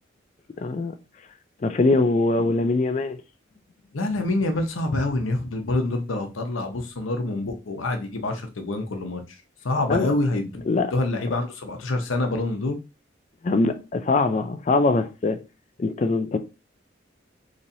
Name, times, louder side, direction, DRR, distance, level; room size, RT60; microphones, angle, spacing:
voice 1, 0.6-0.9 1.6-3.2 9.9-10.1 10.7-10.9 13.4-15.4 15.8-16.4, left 3 dB, 35° left, 0.3 m, -22 dB
voice 2, 3.9-9.2 9.6-12.8, left 2 dB, 85° left, 0.8 m, -26 dB
4.1 x 3.0 x 2.6 m
head